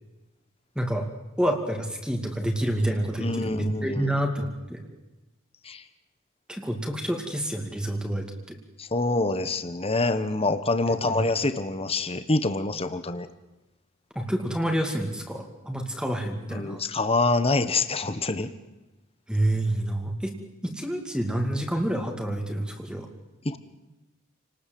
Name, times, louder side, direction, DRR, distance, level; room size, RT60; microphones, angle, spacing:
voice 1, 0.8-1.1 1.4-4.8 6.5-8.6 10.9-11.2 14.1-16.8 19.3-20.3 20.6-23.1, right 1 dB, 5° right, 2 dB, 2.4 m, -28 dB
voice 2, 3.2-4.1 5.6-5.8 8.8-13.3 16.5-18.5 23.4-23.6, left 3 dB, 30° left, 10 dB, 1.3 m, -26 dB
29.0 x 19.5 x 7.9 m, 1.1 s
head